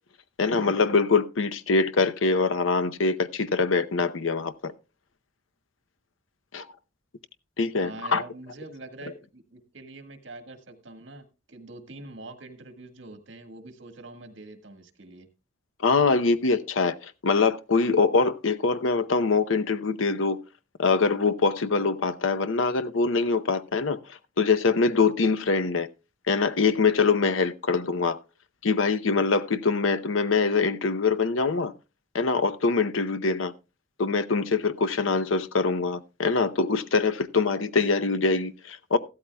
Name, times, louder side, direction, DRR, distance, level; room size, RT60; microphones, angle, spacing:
voice 1, 0.4-4.7 6.5-6.7 7.6-8.2 15.8-20.4 20.8-25.9 26.3-28.2 28.6-31.7 32.1-33.5 34.0-39.0, left 4 dB, 90° left, 0.8 m, -24 dB
voice 2, 7.8-15.3, right 2 dB, 70° right, 1.7 m, -44 dB
14.5 x 12.5 x 2.3 m
head